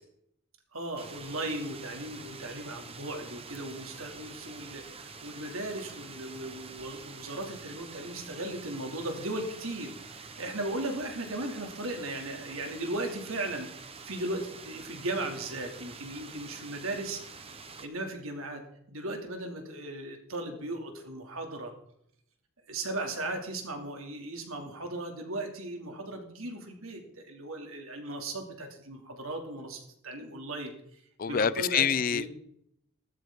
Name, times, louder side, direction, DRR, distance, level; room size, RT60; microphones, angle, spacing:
voice 1, 0.7-17.2 17.8-18.6 18.9-21.7 22.7-32.3, right 1 dB, 75° right, 2.7 m, -37 dB
sound 1, 1.0-17.9, right 4 dB, 25° right, 1.0 m, -46 dB
voice 2, 31.2-32.3, left 7 dB, 40° left, 0.4 m, -26 dB
14.0 x 13.0 x 3.8 m
head